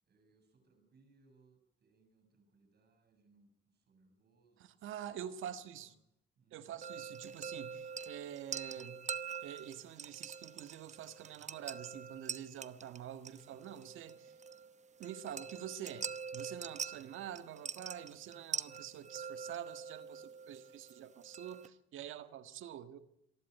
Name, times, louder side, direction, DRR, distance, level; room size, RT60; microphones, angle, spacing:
voice 1, 0.0-4.8 5.4-5.9 6.4-7.0, right 3 dB, 55° right, 6.7 m, -70 dB
voice 2, 4.6-5.9 6.5-9.0 9.4-14.3 15.0-23.0, right 10 dB, 85° right, 1.7 m, -46 dB
sound 1, 6.8-21.7, right 6 dB, 35° right, 0.9 m, -45 dB
26.5 x 11.5 x 9.2 m
cardioid pair, 90°, 20 cm